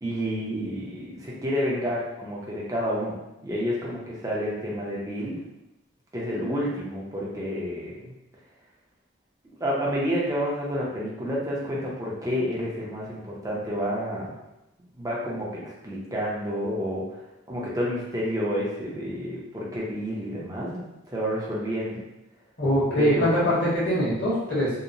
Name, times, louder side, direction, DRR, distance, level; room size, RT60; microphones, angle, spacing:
voice 1, 0.0-3.1 3.4-5.4 6.1-8.1 9.6-14.4 15.0-15.5 15.8-17.2 17.5-20.8 21.1-22.0 22.9-23.5, equal, 15° right, -5 dB, 0.5 m, -29 dB
voice 2, 22.6-24.7, equal, 55° left, -8 dB, 1.0 m, -23 dB
2.8 x 2.0 x 2.5 m, 0.94 s
head